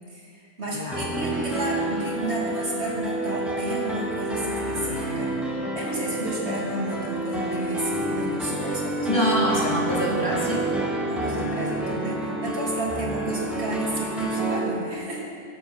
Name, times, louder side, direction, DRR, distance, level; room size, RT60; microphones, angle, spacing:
voice 1, 0.1-5.3 5.7-9.5 9.8-9.9 11.1-15.2, right 1 dB, 65° right, -5 dB, 3.2 m, -32 dB
voice 2, 0.7-1.1 9.1-10.9, equal, 20° left, -5 dB, 2.9 m, -26 dB
sound 1, 0.9-14.6, right 1 dB, ahead, 1.8 m, -29 dB
20.5 x 8.4 x 5.6 m, 2.3 s
omnidirectional pair, 1.2 m